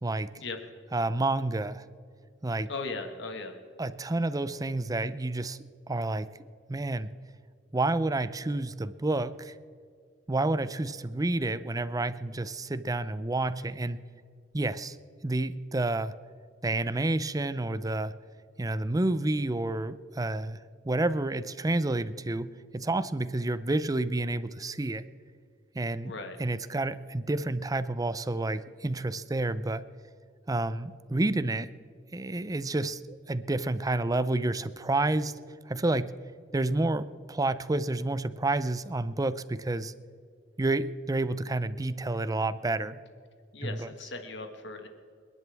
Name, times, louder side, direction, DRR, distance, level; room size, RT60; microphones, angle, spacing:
voice 1, 0.9-1.8 2.4-2.7 3.8-5.6 5.9-6.3 6.7-7.1 7.7-9.5 10.3-14.0 14.5-15.0 15.2-16.1 16.6-18.1 18.6-25.0 25.7-26.1 26.4-29.9 30.5-31.7 32.1-35.3 35.7-36.1 36.5-39.9 40.6-43.0 43.6-43.9, right 2 dB, 20° right, 14 dB, 0.5 m, -29 dB
voice 2, 2.7-3.5 26.0-26.4 43.5-44.9, left 3 dB, 70° left, 5 dB, 1.7 m, -38 dB
28.0 x 11.0 x 3.5 m, 2.2 s
head